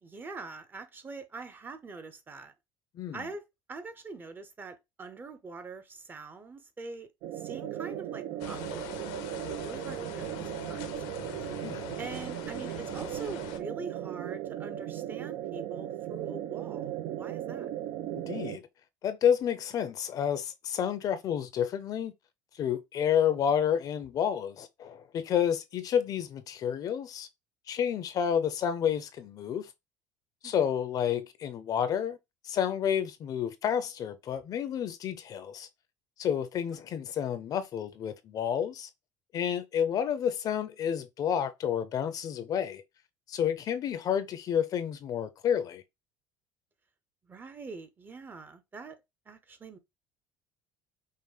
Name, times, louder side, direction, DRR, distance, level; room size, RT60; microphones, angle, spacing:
voice 1, 0.0-2.5 3.1-3.4 3.7-7.1 7.3-8.9 9.6-11.0 12.0-17.7 30.4-30.5 47.3-49.0 49.3-49.8, right 4 dB, 20° right, 0.6 m, -44 dB
sound 1, 7.2-18.6, right 12 dB, 65° right, 0.4 m, -37 dB
sound 2, 8.4-13.6, left 10 dB, 80° left, 0.8 m, -44 dB
voice 2, 11.6-11.9 18.1-18.6 19.0-22.1 22.6-27.3 27.7-29.7 30.4-32.2 32.4-35.7 36.2-38.9 39.3-42.8 43.3-45.8, left 8 dB, 45° left, 0.6 m, -30 dB
5.5 x 2.1 x 3.2 m
cardioid pair, 125°, 9 cm